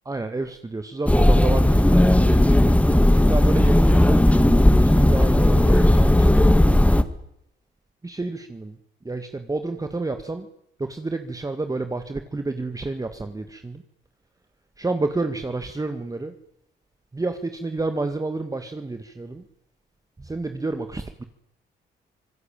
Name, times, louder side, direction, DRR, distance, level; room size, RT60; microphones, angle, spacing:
voice 1, 0.1-2.4 3.3-4.2 4.7-6.5 8.0-8.8 9.0-10.5 10.8-13.8 14.8-16.3 17.1-19.4 20.2-21.2, right 3 dB, 15° right, 7 dB, 1.9 m, -29 dB
sound 1, 1.1-7.0, left 1 dB, 5° left, 2.0 m, -16 dB
26.0 x 19.5 x 9.1 m, 0.78 s
cardioid pair, 90°, 20 cm